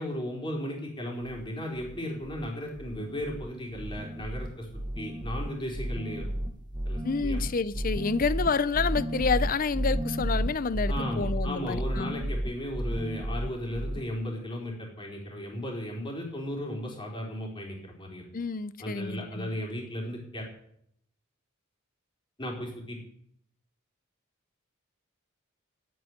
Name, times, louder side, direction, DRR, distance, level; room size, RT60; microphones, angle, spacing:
voice 1, 0.0-4.7 5.0-6.3 6.9-7.4 10.9-18.3 18.8-20.5 22.4-23.0, equal, 25° left, 4.1 m, -35 dB
sound 1, 1.2-1.5 1.7-2.5 2.7-3.5 3.7-14.0, equal, 20° right, 1.0 m, -32 dB
voice 2, 7.0-12.1 18.3-19.5, left 5 dB, 45° left, 0.6 m, -29 dB
9.3 x 8.7 x 9.6 m
head